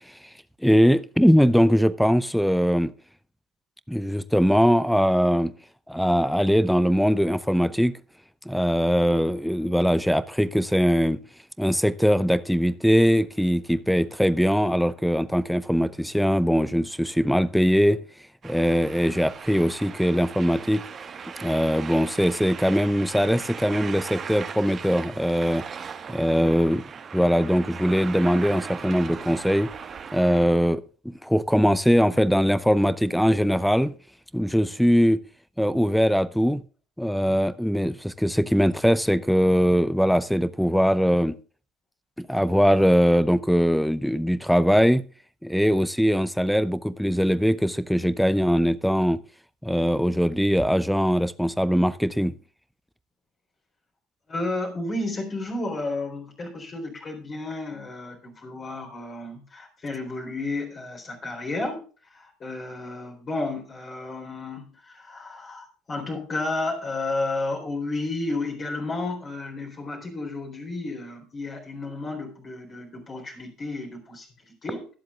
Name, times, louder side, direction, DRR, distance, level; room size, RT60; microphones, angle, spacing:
voice 1, 0.6-2.9 3.9-5.5 5.9-8.0 8.5-11.2 11.6-18.0 18.4-20.8 21.4-25.6 26.1-26.8 27.1-29.7 30.1-33.9 34.3-35.2 35.6-36.6 37.0-41.4 42.2-45.0 45.4-49.2 49.6-52.3, equal, ahead, 0.6 m, -21 dB
sound 1, 18.4-30.4, right 6 dB, 35° right, 1.4 m, -38 dB
voice 2, 54.3-74.9, left 2 dB, 35° left, 3.8 m, -32 dB
22.5 x 7.7 x 2.4 m
figure-of-eight pair, 60°, 0 cm